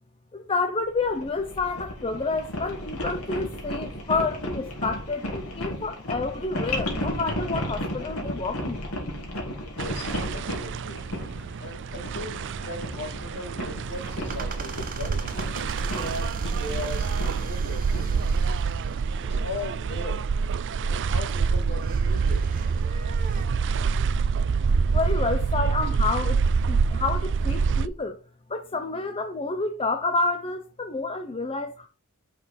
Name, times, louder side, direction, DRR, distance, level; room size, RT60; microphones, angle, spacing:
voice 1, 0.3-8.9 24.9-28.2 28.5-31.9, left 3 dB, 25° left, 0.6 m, -29 dB
sound 1, 1.0-18.9, left 1 dB, 70° left, 2.8 m, -34 dB
voice 2, 9.8-11.0 11.6-15.2 15.8-18.2 19.2-20.2 20.9-22.4, left 2 dB, 50° left, 2.6 m, -38 dB
sound 2, 9.8-27.9, right 5 dB, 55° right, 0.4 m, -26 dB
sound 3, 13.8-23.5, right 5 dB, 40° right, 1.2 m, -42 dB
5.8 x 5.7 x 6.8 m
head